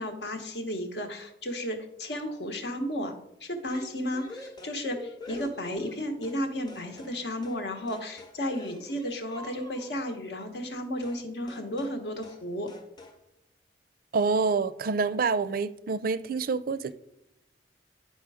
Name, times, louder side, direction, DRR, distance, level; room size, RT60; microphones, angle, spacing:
voice 1, 0.0-3.1 3.4-12.7, equal, 70° left, 1.1 m, -33 dB
sound 1, 3.7-6.4 6.7-7.2 7.4-7.6 7.9-10.0 11.0-11.2 11.5-12.0 12.2-12.4 12.7-13.2, left 2 dB, 25° left, 0.9 m, -45 dB
voice 2, 14.1-16.9, right 4 dB, 55° right, 0.4 m, -27 dB
10.0 x 4.4 x 4.8 m
head